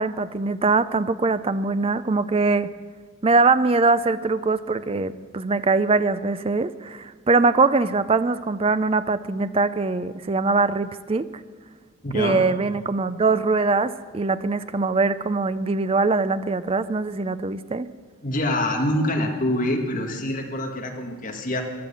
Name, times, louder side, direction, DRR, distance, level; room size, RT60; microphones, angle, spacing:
voice 1, 0.0-2.7 3.2-11.3 12.1-17.9, right 3 dB, 25° right, 14 dB, 0.4 m, -22 dB
voice 2, 12.0-12.4 18.2-21.6, left 1 dB, 40° left, 2 dB, 1.8 m, -25 dB
15.0 x 11.0 x 7.0 m, 1.5 s
head